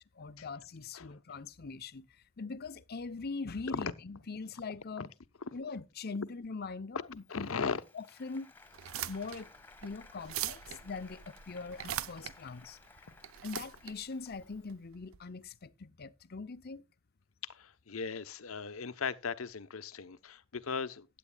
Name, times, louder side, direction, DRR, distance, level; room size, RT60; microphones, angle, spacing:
voice 1, 0.2-2.1 2.4-5.1 5.5-8.5 9.1-9.5 9.8-12.8 13.4-16.8, left 4 dB, 50° left, 0.7 m, -42 dB
Applause, 7.1-14.7, left 3 dB, 10° left, 1.7 m, -58 dB
voice 2, 7.3-7.8 17.4-21.1, left 5 dB, 80° left, 0.9 m, -37 dB
sound 1, 8.7-15.2, right 11 dB, 75° right, 0.6 m, -42 dB
15.5 x 9.9 x 2.3 m
head